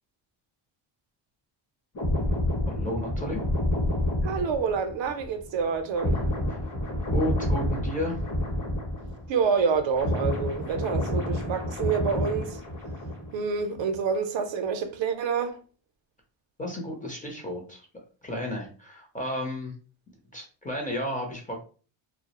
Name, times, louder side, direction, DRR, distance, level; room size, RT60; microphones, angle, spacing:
sound 1, 1.9-9.5 9.7-13.4 13.7-14.0, left 1 dB, 40° left, 0.8 m, -29 dB
voice 1, 2.6-3.4 7.1-8.2 16.6-17.9 18.2-19.7 20.3-21.6, left 1 dB, 15° left, 0.5 m, -32 dB
voice 2, 4.2-6.2 9.3-12.6 13.3-15.6, right 6 dB, 65° right, 0.5 m, -27 dB
2.2 x 2.0 x 2.8 m
cardioid pair, 115°, 49 cm